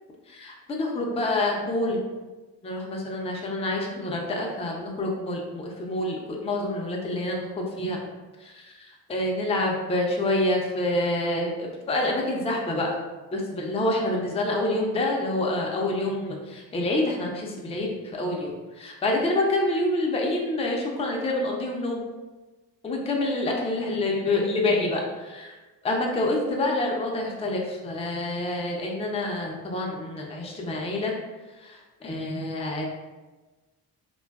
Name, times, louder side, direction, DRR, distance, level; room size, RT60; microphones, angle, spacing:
voice 1, 0.3-2.0 2.6-8.0 8.4-12.9 13.3-22.0 22.8-25.6 25.8-31.1 31.5-32.9, left 1 dB, 15° left, -1 dB, 0.4 m, -27 dB
2.4 x 2.3 x 2.2 m, 1.2 s
hypercardioid pair, 45°, 47 cm